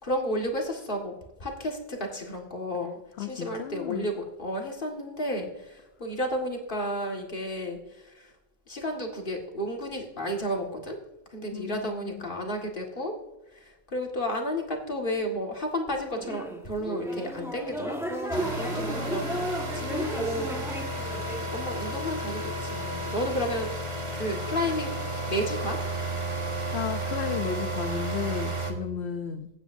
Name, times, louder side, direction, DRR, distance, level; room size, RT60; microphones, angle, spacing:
voice 1, 0.0-1.1 1.4-7.8 8.2-8.3 8.7-11.0 11.3-13.1 13.9-20.5 21.5-23.7 24.1-24.9 25.3-25.8, equal, 55° left, 1 dB, 2.0 m, -32 dB
voice 2, 3.2-4.1 11.5-12.3 26.7-29.5, left 8 dB, 85° left, 8 dB, 0.9 m, -33 dB
sound 1, 16.1-21.4, right 1 dB, 5° right, 1.4 m, -34 dB
sound 2, 18.3-28.7, right 1 dB, 30° right, 1.4 m, -32 dB
16.0 x 9.0 x 2.7 m, 0.99 s
omnidirectional pair, 1.0 m